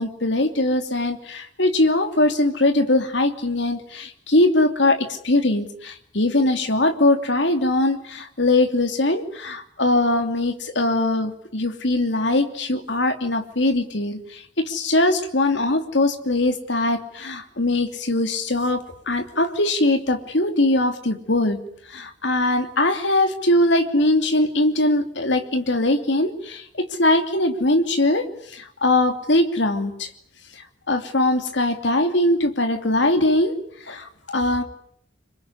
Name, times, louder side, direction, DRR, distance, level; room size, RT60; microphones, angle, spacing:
voice 1, 0.0-21.6 21.9-30.1 30.5-30.6 30.9-33.5 33.9-34.6, left 2 dB, 70° left, 6 dB, 2.9 m, -21 dB
26.0 x 22.5 x 9.8 m, 0.69 s
head